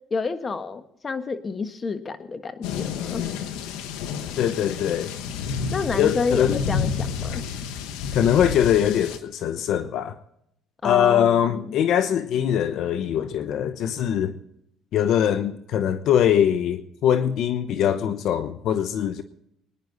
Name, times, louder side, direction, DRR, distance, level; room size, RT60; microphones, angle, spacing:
voice 1, 0.1-3.2 5.7-7.4 10.8-11.7, left 4 dB, 30° left, 1.5 m, -29 dB
sound 1, 2.6-9.2, left 6 dB, 85° left, 1.3 m, -30 dB
voice 2, 4.4-5.2 6.0-6.6 8.1-10.2 10.8-14.3 14.9-19.2, left 9 dB, 65° left, 1.0 m, -22 dB
23.5 x 10.5 x 4.1 m
cardioid pair, 95°, 0 cm